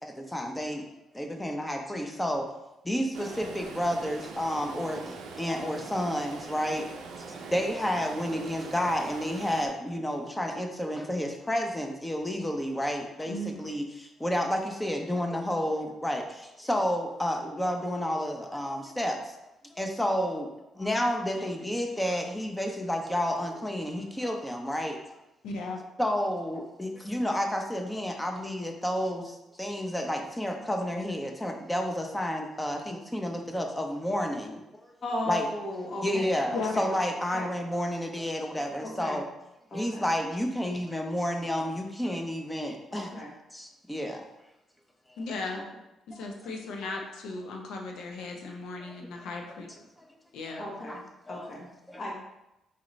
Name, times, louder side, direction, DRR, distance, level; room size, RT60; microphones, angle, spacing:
voice 1, 0.0-0.8 1.1-2.5 2.8-6.9 7.3-19.4 19.7-25.0 26.0-34.6 35.3-35.5 36.0-39.2 39.7-43.1 43.5-44.2 46.1-46.3 48.9-49.0 50.5-51.0 51.3-51.5 51.9-52.0, equal, 10° left, 3 dB, 0.7 m, -31 dB
Stream, 3.1-9.7, right 4 dB, 85° right, 0.5 m, -42 dB
voice 2, 13.2-13.6 25.4-25.8 36.5-36.7 45.2-45.6 46.1-49.7 50.3-50.6, left 3 dB, 80° left, 2 dB, 0.7 m, -36 dB
voice 3, 35.0-36.9 37.3-37.4 38.8-39.2 39.7-40.0 42.9-43.3 45.5-45.6 50.6-51.0 51.3-51.7 52.0-52.1, left 1 dB, 45° left, -3 dB, 1.4 m, -36 dB
4.3 x 3.7 x 3.1 m, 0.89 s
cardioid pair, 90°, 0 cm